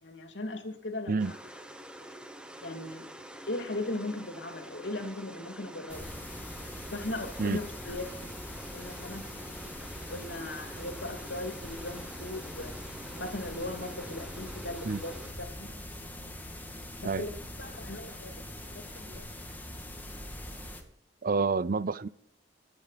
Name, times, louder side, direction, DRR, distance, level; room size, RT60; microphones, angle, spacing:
voice 1, 0.0-1.4 2.6-3.1 3.5-6.1 6.9-8.2 8.7-9.3 10.1-15.7 17.0-19.3, left 2 dB, 85° left, 2.7 m, -38 dB
sound 1, 1.2-15.3, equal, 5° right, 1.3 m, -47 dB
sound 2, 5.9-20.8, left 1 dB, 10° left, 2.2 m, -43 dB
voice 2, 21.2-22.1, right 4 dB, 50° right, 0.6 m, -28 dB
26.0 x 9.0 x 4.2 m
head